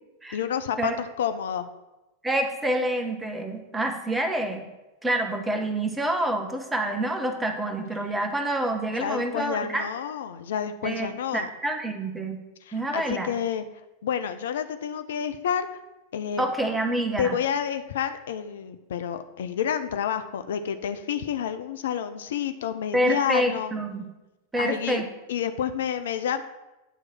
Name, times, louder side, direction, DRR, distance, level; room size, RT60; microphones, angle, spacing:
voice 1, 0.3-1.7 8.9-11.5 12.6-13.6 14.0-15.7 16.1-16.5 17.2-23.7 24.6-25.0 25.3-26.4, left 8 dB, 60° left, 10 dB, 0.4 m, -29 dB
voice 2, 2.2-4.6 5.0-9.8 10.8-11.1 11.3-12.4 12.7-13.3 16.4-17.4 22.9-24.1 24.5-25.1, right 1 dB, 10° right, 4 dB, 0.9 m, -27 dB
9.1 x 3.2 x 5.9 m, 1.0 s
figure-of-eight pair, 90°, 0 cm